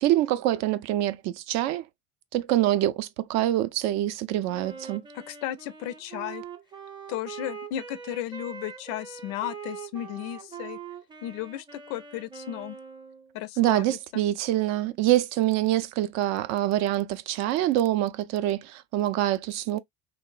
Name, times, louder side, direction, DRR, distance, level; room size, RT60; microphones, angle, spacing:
voice 1, 0.0-1.8 2.3-5.0 13.6-19.8, right 14 dB, 60° right, 0.4 m, -25 dB
Wind instrument woodwind instrument, 4.5-13.3, right 6 dB, 15° right, 0.5 m, -42 dB
voice 2, 5.1-6.4 7.1-10.8 11.2-12.8 13.3-14.2, left 12 dB, 70° left, 0.5 m, -35 dB
2.9 x 2.1 x 2.3 m
supercardioid pair, 85°, 31 cm